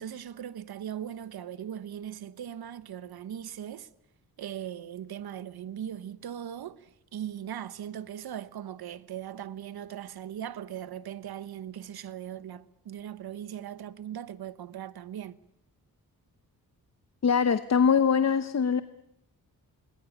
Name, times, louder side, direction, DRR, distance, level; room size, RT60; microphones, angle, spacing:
voice 1, 0.0-3.9 4.4-15.4, right 10 dB, 75° right, 1.2 m, -39 dB
voice 2, 17.2-18.8, left 6 dB, 45° left, 1.0 m, -23 dB
27.5 x 21.0 x 8.6 m
cardioid pair, 100°, 38 cm